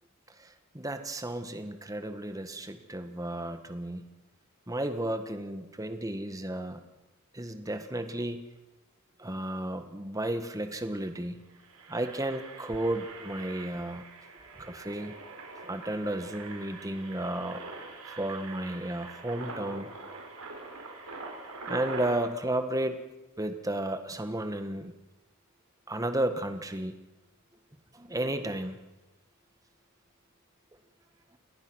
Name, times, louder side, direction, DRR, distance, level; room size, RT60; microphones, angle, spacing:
voice 1, 0.7-4.0 4.7-6.8 7.3-8.4 9.2-11.4 11.9-14.0 14.6-15.2 15.7-17.6 18.1-19.9 21.7-23.0 23.4-24.9 25.9-26.9 27.9-28.8, right 1 dB, 15° right, 8 dB, 1.4 m, -33 dB
Engine, 10.8-11.0 11.5-22.2, right 3 dB, 85° right, 5.4 m, -44 dB
28.5 x 19.0 x 6.3 m, 1.0 s
head